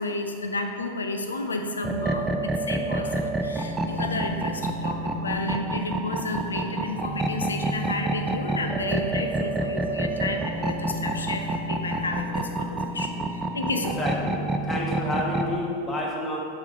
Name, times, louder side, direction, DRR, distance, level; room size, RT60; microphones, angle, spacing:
voice 1, 0.0-14.0, left 2 dB, 80° left, 5 dB, 0.5 m, -32 dB
sound 1, 1.8-15.5, right 2 dB, 10° right, 0.4 m, -28 dB
voice 2, 13.7-16.4, left 1 dB, 15° left, -3 dB, 1.4 m, -30 dB
7.4 x 3.7 x 4.5 m, 2.5 s
figure-of-eight pair, 90°, 0 cm